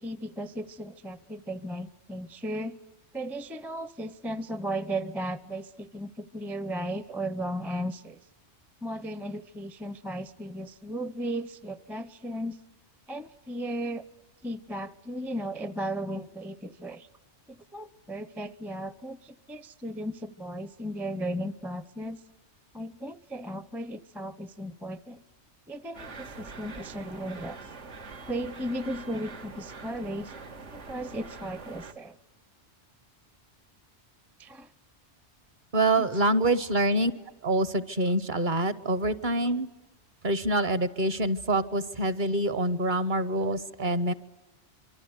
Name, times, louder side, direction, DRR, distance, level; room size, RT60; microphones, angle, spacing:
voice 1, 0.0-2.8 3.1-8.2 8.8-12.6 13.1-14.0 14.4-17.1 17.5-22.2 22.7-25.2 25.7-27.6 28.3-30.3 30.7-32.2 34.4-34.7 36.0-36.1, right 1 dB, ahead, 15 dB, 0.5 m, -35 dB
sound 1, 25.9-31.9, right 4 dB, 90° right, 2.0 m, -44 dB
voice 2, 35.7-37.1 37.4-39.7 40.2-44.1, right 1 dB, 45° right, 14 dB, 1.0 m, -26 dB
26.0 x 24.0 x 8.1 m, 1.2 s
omnidirectional pair, 1.2 m